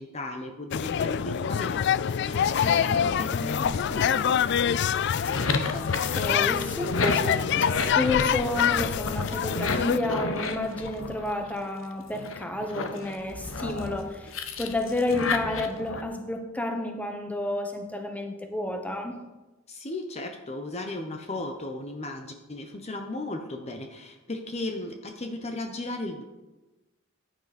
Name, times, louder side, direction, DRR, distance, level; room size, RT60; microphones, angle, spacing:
voice 1, 0.0-4.3 19.7-26.2, left 2 dB, 35° left, 1.0 m, -36 dB
sound 1, 0.7-10.0, left 8 dB, 60° left, 0.4 m, -26 dB
sound 2, 5.0-11.7 12.1-16.0, left 3 dB, 80° left, 1.1 m, -32 dB
voice 2, 5.7-19.2, left 2 dB, 10° left, 1.2 m, -31 dB
15.0 x 9.2 x 4.3 m
head